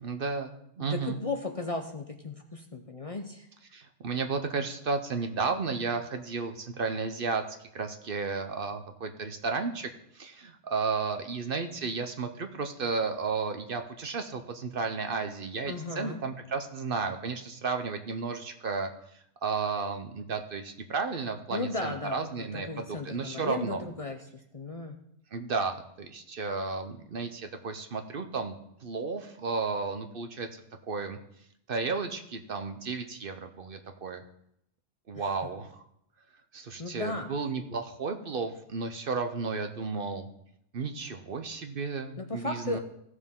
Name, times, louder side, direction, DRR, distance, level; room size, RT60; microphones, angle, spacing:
voice 1, 0.0-1.2 3.7-7.4 7.7-9.9 10.1-18.9 19.4-23.8 25.3-28.5 28.8-30.5 30.9-31.2 31.7-34.2 35.1-35.8 36.5-40.3 40.7-42.8, right 4 dB, 55° right, 7 dB, 0.9 m, -33 dB
voice 2, 0.8-3.5 15.7-16.2 21.5-24.2 24.5-25.0 35.1-35.3 36.8-37.3 42.2-42.8, left 3 dB, 35° left, 4 dB, 0.7 m, -35 dB
16.5 x 6.4 x 3.7 m, 0.75 s
omnidirectional pair, 1.2 m